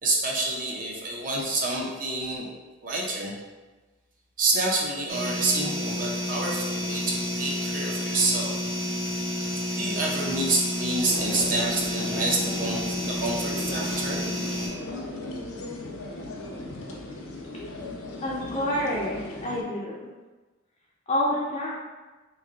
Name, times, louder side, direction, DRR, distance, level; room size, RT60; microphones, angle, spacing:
voice 1, 0.0-3.3 4.4-8.5 9.7-14.3, right 2 dB, 40° right, -2 dB, 0.6 m, -28 dB
sound 1, 5.1-14.7, left 1 dB, 65° right, 1.2 m, -30 dB
sound 2, 11.0-19.6, left 2 dB, 80° left, 0.6 m, -37 dB
voice 2, 18.2-20.1 21.1-21.7, left 1 dB, 30° left, -6 dB, 0.4 m, -28 dB
3.2 x 2.5 x 3.8 m, 1.2 s
head